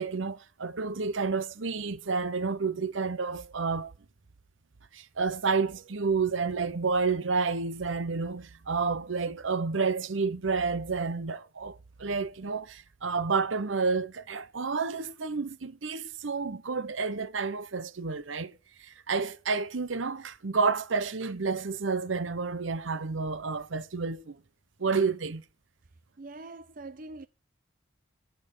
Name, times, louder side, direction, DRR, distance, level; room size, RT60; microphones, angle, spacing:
voice 1, 0.0-3.9 4.9-18.5 18.8-24.4 24.8-25.4, right 4 dB, 90° right, 0.9 m, -30 dB
voice 2, 26.2-27.3, right 2 dB, 45° right, 0.6 m, -43 dB
12.5 x 10.5 x 6.5 m
head